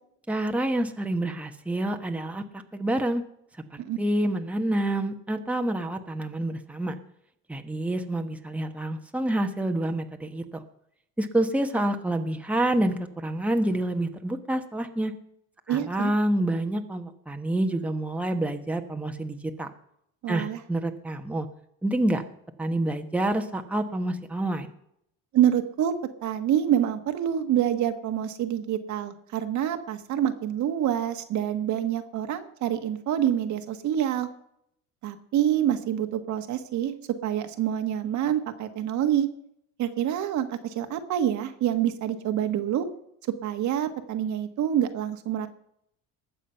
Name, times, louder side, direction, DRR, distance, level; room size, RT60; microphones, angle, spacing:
voice 1, 0.3-3.2 4.0-6.9 7.5-10.6 11.2-15.1 15.7-19.7 20.3-21.5 21.8-22.2 22.6-24.7, right 1 dB, 5° right, 5 dB, 1.2 m, -27 dB
voice 2, 15.7-16.1 20.2-20.6 25.3-25.9 26.2-34.3 35.0-36.9 37.2-39.3 39.8-42.9 43.4-45.5, right 10 dB, 60° right, 7 dB, 1.5 m, -26 dB
20.0 x 7.3 x 5.7 m, 0.75 s
supercardioid pair, 100°, 33 cm